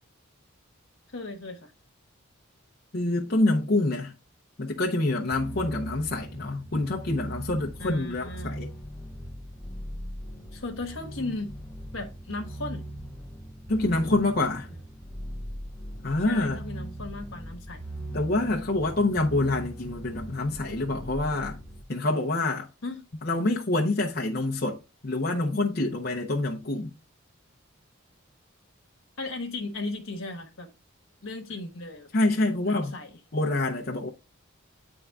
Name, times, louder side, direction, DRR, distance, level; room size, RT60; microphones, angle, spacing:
voice 1, 1.1-1.7 7.8-8.6 10.5-11.5 11.9-12.8 16.2-17.8 22.8-23.1 29.2-30.7 31.2-32.1 32.6-33.1, left 2 dB, 75° left, 1.2 m, -36 dB
voice 2, 2.9-4.1 4.6-8.7 13.7-14.7 16.0-16.6 18.1-21.6 21.9-22.7 23.2-24.8 25.0-26.9 32.1-32.9 33.3-34.1, left 2 dB, 50° left, 0.7 m, -26 dB
sound 1, 5.3-21.8, right 1 dB, 10° left, 0.7 m, -39 dB
9.3 x 3.5 x 3.5 m
head